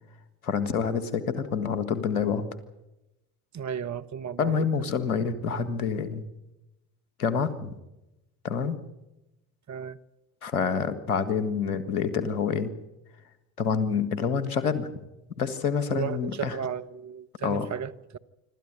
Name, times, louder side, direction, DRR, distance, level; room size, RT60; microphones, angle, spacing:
voice 1, 0.4-2.5 4.4-6.2 7.2-7.7 8.4-8.8 10.4-12.7 13.6-14.9 15.4-16.6 17.4-17.7, left 6 dB, 90° left, 1.8 m, -27 dB
voice 2, 3.5-4.7 9.7-10.0 15.9-18.2, right 7 dB, 40° right, 1.3 m, -34 dB
26.0 x 13.0 x 9.1 m
hypercardioid pair, 60°, 43 cm